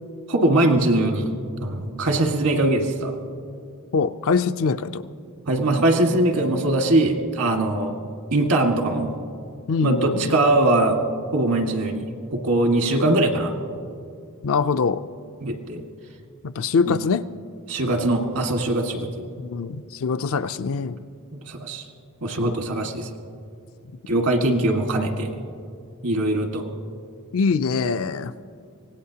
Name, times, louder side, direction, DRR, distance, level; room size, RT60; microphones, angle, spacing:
voice 1, 0.3-1.3 1.6-3.2 5.5-7.9 8.3-9.1 9.8-11.1 11.3-13.5 15.4-15.8 16.9-17.0 17.7-19.3 21.3-21.9 22.2-23.1 24.1-25.3 26.0-26.7, right 2 dB, 75° right, 3 dB, 1.7 m, -21 dB
voice 2, 3.9-5.1 9.7-10.4 14.4-15.0 16.4-17.2 19.4-21.0 26.6-26.7 27.3-28.3, left 5 dB, 65° left, 10 dB, 0.4 m, -23 dB
25.0 x 18.0 x 2.9 m, 2.5 s
head